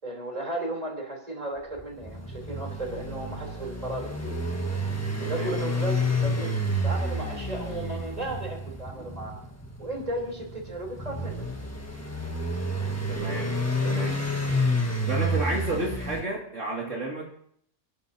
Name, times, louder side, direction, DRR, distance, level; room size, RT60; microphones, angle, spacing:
voice 1, 0.0-4.4 5.3-9.4 9.8-11.4, right 1 dB, 30° right, 0 dB, 3.8 m, -35 dB
sound 1, 1.7-16.2, equal, 10° left, 1.4 m, -30 dB
voice 2, 5.2-5.6 9.0-9.1 13.1-13.6 13.8-14.2 15.1-17.3, right 2 dB, 70° right, -3 dB, 2.9 m, -31 dB
29.0 x 10.5 x 2.9 m, 0.67 s
omnidirectional pair, 1.3 m